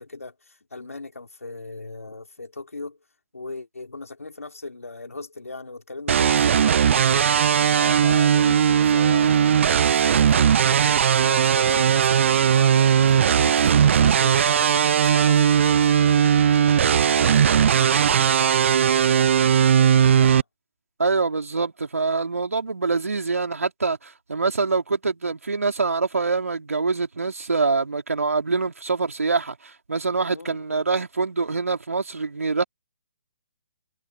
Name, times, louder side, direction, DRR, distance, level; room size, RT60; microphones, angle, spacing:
voice 1, 0.0-3.0 3.3-16.4 16.7-20.4 30.3-30.9, left 3 dB, 90° left, 4.9 m, -38 dB
sound 1, 6.1-20.4, right 8 dB, 60° right, 0.6 m, -18 dB
voice 2, 21.0-32.6, right 4 dB, 80° right, 3.9 m, -25 dB
figure-of-eight pair, 135°, 8 cm